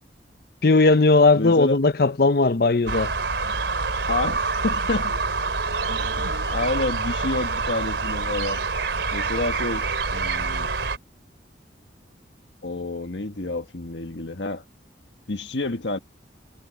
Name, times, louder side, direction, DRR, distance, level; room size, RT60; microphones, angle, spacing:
voice 1, 0.6-3.1, left 3 dB, 55° left, 0.7 m, -18 dB
voice 2, 1.3-1.8 4.1-5.1 5.9-8.6 9.1-10.7 12.6-14.6 15.3-16.0, left 2 dB, 85° left, 1.5 m, -29 dB
sound 1, 2.9-11.0, right 4 dB, 85° right, 3.5 m, -26 dB
head